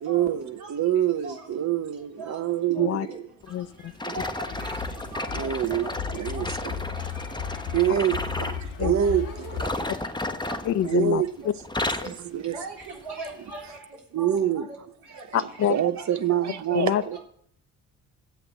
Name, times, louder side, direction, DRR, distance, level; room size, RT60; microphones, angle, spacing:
voice 1, 0.0-3.2 4.0-4.1 5.3-6.7 7.7-9.6 10.8-11.3 12.3-12.6 14.1-14.7 15.7-17.2, right 10 dB, 40° right, 0.9 m, -26 dB
voice 2, 2.7-3.2 4.1-4.8 5.1-5.5 5.8-6.7 8.4-8.5 9.3-9.7 10.4-10.6 12.0-12.1 12.5-13.8 14.2-14.6 16.0-16.1 16.4-16.5 16.8-17.2, right 2 dB, 60° right, 3.7 m, -40 dB
voice 3, 3.5-3.9 8.8-8.9 10.6-11.5 15.3-15.7 16.7-17.0, left 11 dB, 35° left, 0.5 m, -26 dB
sound 1, 4.0-8.6 9.5-11.3 11.6-12.2 12.8-13.0 13.7-13.8, left 2 dB, 10° left, 1.2 m, -33 dB
sound 2, 4.5-9.6, left 7 dB, 80° left, 1.0 m, -35 dB
12.5 x 7.9 x 7.5 m
figure-of-eight pair, 45°, 43 cm